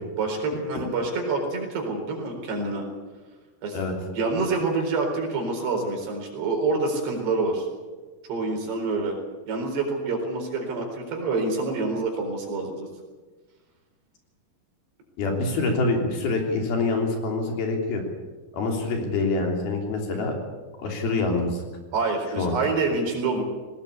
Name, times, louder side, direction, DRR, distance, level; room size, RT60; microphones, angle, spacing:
voice 1, 0.2-2.8 3.6-3.8 4.1-7.7 8.3-9.2 9.5-12.9 21.9-23.4, right 3 dB, 75° right, 2 dB, 6.3 m, -27 dB
voice 2, 15.2-18.0 18.5-20.3 20.8-21.6 22.4-22.6, left 3 dB, 65° left, 2 dB, 4.9 m, -25 dB
19.5 x 19.0 x 8.5 m, 1.3 s
omnidirectional pair, 4.9 m